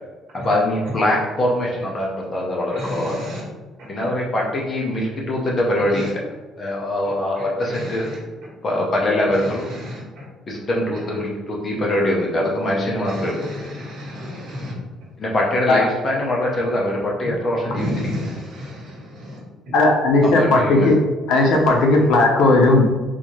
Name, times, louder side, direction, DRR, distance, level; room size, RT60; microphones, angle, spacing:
voice 1, 0.3-3.2 3.9-6.1 6.6-8.1 8.6-9.6 10.5-13.5 15.2-17.9 20.2-20.9, left 1 dB, 25° left, -2 dB, 0.6 m, -23 dB
voice 2, 2.7-3.4 4.0-4.1 5.9-6.1 7.4-8.2 9.2-10.0 13.0-14.7 17.7-19.4 20.8-20.9, left 1 dB, 50° right, -5 dB, 1.5 m, -32 dB
voice 3, 19.7-20.9 21.3-22.8, left 2 dB, 70° left, 1 dB, 0.7 m, -15 dB
3.7 x 2.7 x 3.0 m, 1.2 s
cardioid pair, 175°, 0 cm